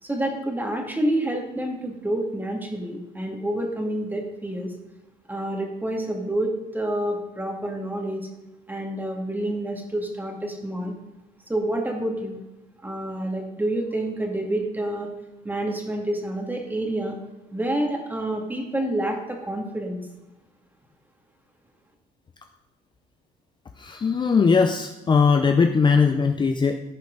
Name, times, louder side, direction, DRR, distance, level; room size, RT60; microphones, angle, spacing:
voice 1, 0.0-4.7 5.3-8.3 8.7-10.9 11.5-12.4 12.8-15.1 15.4-17.2 17.5-20.0, right 1 dB, 10° right, 1 dB, 2.4 m, -28 dB
voice 2, 23.8-26.8, left 5 dB, 25° left, 6 dB, 0.7 m, -20 dB
15.5 x 5.2 x 4.0 m, 1.0 s
cardioid pair, 110°, 17 cm